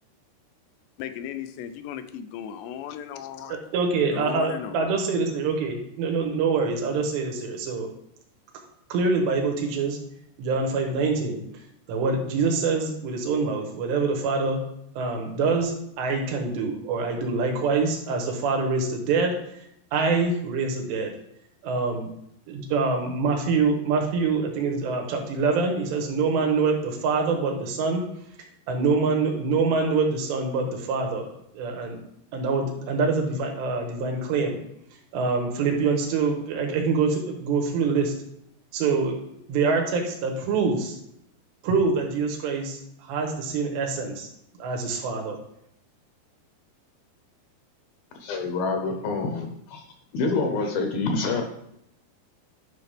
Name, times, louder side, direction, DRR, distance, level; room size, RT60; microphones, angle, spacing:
voice 1, 1.0-3.6 4.1-4.8, left 9 dB, 90° left, 9 dB, 2.9 m, -36 dB
voice 2, 3.5-7.9 8.9-10.0 10.4-11.4 11.9-14.6 15.0-19.4 19.9-21.2 21.6-22.1 22.5-28.0 28.7-31.3 31.5-32.0 32.3-34.6 35.1-38.1 38.7-39.2 39.5-41.0 41.6-42.8 43.1-44.3 44.6-45.4, right 4 dB, 85° right, 2 dB, 3.5 m, -25 dB
voice 3, 48.2-49.9 50.1-51.4, left 3 dB, 70° left, 3 dB, 2.4 m, -27 dB
10.5 x 5.6 x 3.4 m, 0.77 s
omnidirectional pair, 4.9 m